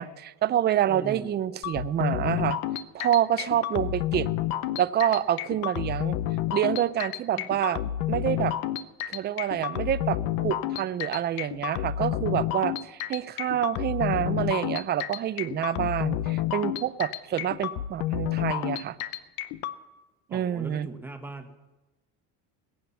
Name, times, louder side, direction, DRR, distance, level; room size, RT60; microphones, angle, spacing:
voice 1, 0.0-2.6 2.9-4.3 4.8-6.2 6.5-7.8 8.1-8.5 9.1-19.0 20.3-20.9, right 11 dB, 30° right, 14 dB, 0.5 m, -27 dB
voice 2, 0.9-1.3 7.3-7.5 20.3-21.7, right 2 dB, 5° right, 4 dB, 1.4 m, -40 dB
sound 1, 1.6-19.8, left 12 dB, 85° left, 0.8 m, -30 dB
21.0 x 8.8 x 5.7 m, 1.1 s
cardioid pair, 130°, 34 cm